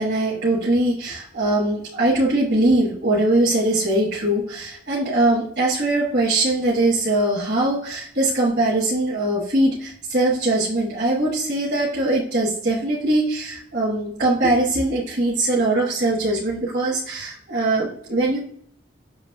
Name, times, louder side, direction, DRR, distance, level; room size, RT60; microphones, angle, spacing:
voice 1, 0.0-18.4, right 2 dB, 60° right, -7 dB, 1.3 m, -21 dB
7.0 x 2.9 x 2.2 m, 0.64 s
head